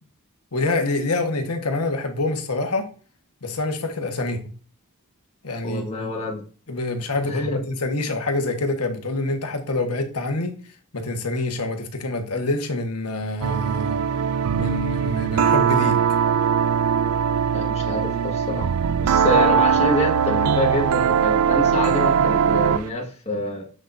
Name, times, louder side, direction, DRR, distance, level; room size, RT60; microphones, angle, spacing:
voice 1, 0.5-2.9 3.4-4.4 5.4-6.1 6.7-10.6 10.9-14.0 14.6-16.0, left 2 dB, 80° left, 1.4 m, -26 dB
voice 2, 5.6-6.4 7.2-7.5 17.5-18.7 19.0-23.6, left 2 dB, 30° left, 1.6 m, -26 dB
sound 1, 13.4-22.9, right 7 dB, 75° right, 0.4 m, -20 dB
7.6 x 6.4 x 2.6 m
head